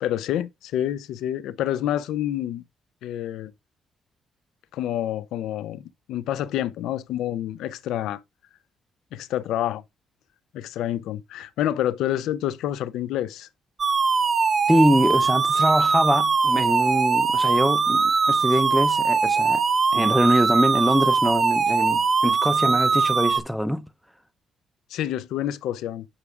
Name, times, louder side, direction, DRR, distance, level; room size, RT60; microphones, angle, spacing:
voice 1, 0.0-2.6 3.0-3.5 4.7-8.2 9.1-9.8 10.5-13.5 24.9-26.1, left 12 dB, 85° left, 0.4 m, -28 dB
sound 1, 13.8-23.4, right 4 dB, 40° right, 0.6 m, -21 dB
voice 2, 14.7-19.6 19.9-23.9, equal, ahead, 0.6 m, -23 dB
9.8 x 4.8 x 2.4 m
cardioid pair, 90°, 0 cm